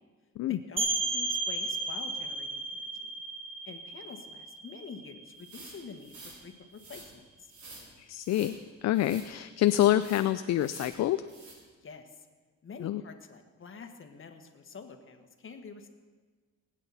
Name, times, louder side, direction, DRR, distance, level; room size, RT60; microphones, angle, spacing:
voice 1, 0.5-0.9 1.1-3.1 3.7-6.1 6.4-7.2 11.8-12.1 12.6-15.9, left 5 dB, 45° left, 6 dB, 1.5 m, -47 dB
sound 1, 0.8-6.2, right 2 dB, 40° right, 1.7 m, -34 dB
sound 2, 5.4-6.4 6.7-7.1 7.5-7.9 8.2-8.5 8.9-9.3 9.6-10.3 10.6-11.0 11.3-11.6, right 2 dB, 70° right, 4.5 m, -49 dB
voice 2, 8.0-8.6 8.8-11.2 12.8-13.0, left 13 dB, 60° left, 12 dB, 0.5 m, -26 dB
20.0 x 9.1 x 4.2 m, 1.4 s
cardioid pair, 90°, 30 cm